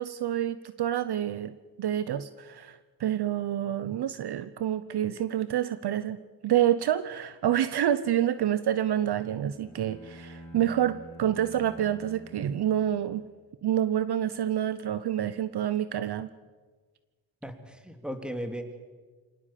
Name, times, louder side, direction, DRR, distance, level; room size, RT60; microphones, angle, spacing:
voice 1, 0.0-6.2 6.4-13.2 13.6-16.3, right 11 dB, 55° right, 14 dB, 0.9 m, -28 dB
Bowed string instrument, 8.8-13.6, equal, 35° left, 4.1 m, -49 dB
voice 2, 17.4-18.9, equal, ahead, 6 dB, 3.0 m, -37 dB
25.0 x 18.5 x 7.6 m, 1.4 s
cardioid pair, 90°, 47 cm